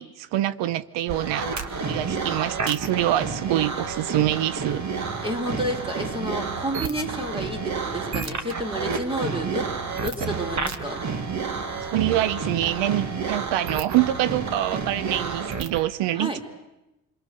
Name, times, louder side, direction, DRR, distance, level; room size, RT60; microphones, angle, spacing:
voice 1, 0.0-1.6 1.9-4.8 11.9-16.4, right 14 dB, 85° right, 0.8 m, -25 dB
sound 1, 1.1-15.9, right 5 dB, 40° right, 1.7 m, -30 dB
voice 2, 5.2-9.7 10.0-11.0 16.1-16.4, right 1 dB, 10° right, 3.4 m, -30 dB
29.0 x 22.0 x 6.6 m
cardioid pair, 135°, 42 cm